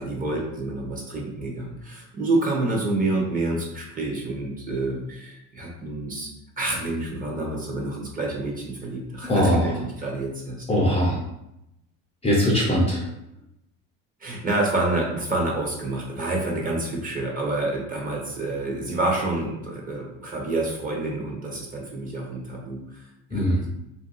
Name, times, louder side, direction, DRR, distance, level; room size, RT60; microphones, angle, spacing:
voice 1, 0.0-6.3 6.6-10.7 14.2-23.0 23.3-23.7, right 2 dB, 25° right, -2 dB, 0.8 m, -28 dB
voice 2, 9.2-9.7 10.7-11.2 12.2-13.1 23.3-23.6, equal, 15° left, -3 dB, 0.5 m, -21 dB
2.6 x 2.3 x 3.9 m, 0.84 s
cardioid pair, 130°, 37 cm